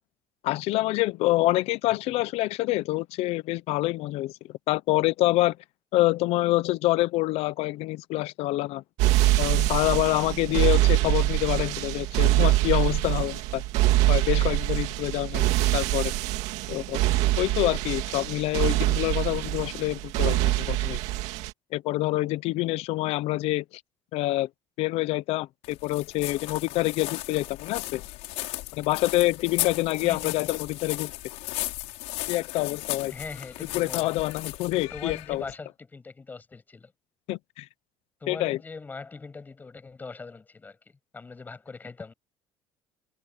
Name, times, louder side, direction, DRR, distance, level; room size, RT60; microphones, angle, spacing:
voice 1, 0.4-4.3 4.7-5.6 5.9-8.8 9.4-13.6 14.1-15.5 15.7-16.1 16.7-17.0 17.4-21.0 21.7-23.6 24.1-24.5 24.8-28.0 28.7-31.1 32.3-33.1 33.7-35.4 37.3-37.7 38.3-38.6, left 18 dB, 60° left, 0.7 m, -26 dB
sound 1, 9.0-21.5, right 17 dB, 75° right, 2.2 m, -24 dB
voice 2, 15.4-15.8 30.0-30.5 33.1-34.1 34.7-36.9 38.2-42.1, left 4 dB, 15° left, 6.9 m, -41 dB
sound 2, 25.6-35.5, left 20 dB, 80° left, 5.9 m, -36 dB
cardioid pair, 170°, 11 cm